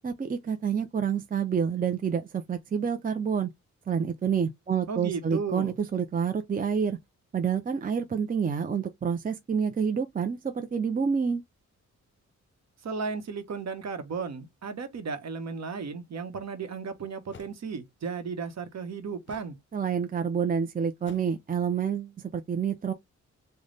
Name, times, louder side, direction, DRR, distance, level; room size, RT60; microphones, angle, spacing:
voice 1, 0.0-3.5 3.9-7.0 7.3-11.4 19.7-22.9, right 7 dB, 30° right, 0.5 m, -28 dB
voice 2, 4.9-5.7 12.8-19.6, right 5 dB, 60° right, 1.0 m, -34 dB
sound 1, 16.5-16.6 17.3-17.6 19.3-19.6 21.0-21.4, left 5 dB, 40° left, 0.7 m, -50 dB
3.2 x 2.2 x 3.9 m
cardioid pair, 75°, 30 cm